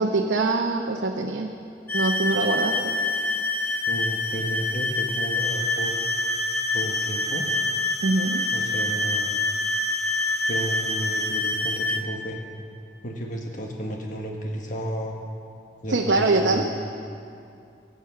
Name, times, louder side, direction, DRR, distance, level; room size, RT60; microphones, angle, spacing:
voice 1, 0.0-1.5 1.9-2.8 8.0-8.4 15.9-16.6, right 3 dB, 85° right, 0 dB, 0.9 m, -23 dB
sound 1, 1.9-12.0, left 2 dB, 10° left, 1.0 m, -26 dB
voice 2, 3.9-6.0 6.7-7.5 8.5-9.4 10.5-12.4 13.0-15.2 15.8-16.6, equal, 45° left, 1 dB, 1.2 m, -32 dB
Telephone, 5.4-11.2, left 1 dB, 80° left, 4.6 m, -39 dB
23.0 x 7.9 x 5.9 m, 2.5 s
head